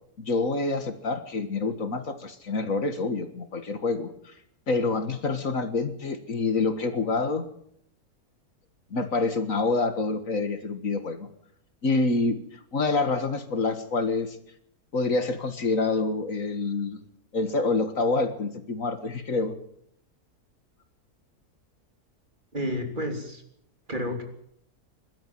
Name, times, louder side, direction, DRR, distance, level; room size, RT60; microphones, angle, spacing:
voice 1, 0.2-4.3 4.7-7.4 8.9-11.3 11.8-12.4 12.7-14.4 14.9-17.0 17.3-19.5, left 3 dB, 60° left, 9 dB, 2.0 m, -27 dB
voice 2, 22.5-23.4 23.9-24.2, equal, 30° right, 4 dB, 3.4 m, -30 dB
23.0 x 12.5 x 9.2 m, 0.70 s
omnidirectional pair, 1.6 m